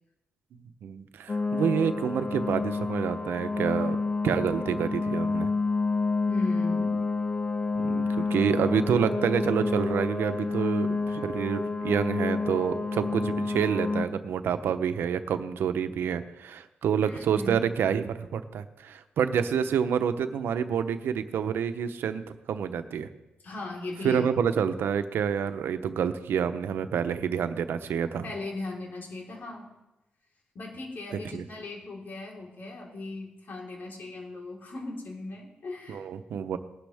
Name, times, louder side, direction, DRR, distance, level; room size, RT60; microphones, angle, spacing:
voice 1, 0.8-4.0 4.2-5.5 7.8-22.2 22.5-23.1 24.0-28.3 31.3-31.4 35.9-36.6, right 7 dB, 85° right, 10 dB, 0.9 m, -28 dB
sound 1, 1.3-14.1, left 3 dB, 40° left, 1.0 m, -29 dB
voice 2, 6.3-7.0 17.0-17.6 23.4-24.4 28.2-29.7 30.5-36.1, left 2 dB, 60° left, -1 dB, 4.2 m, -38 dB
19.0 x 11.5 x 3.6 m, 0.99 s
cardioid pair, 80°, 4 cm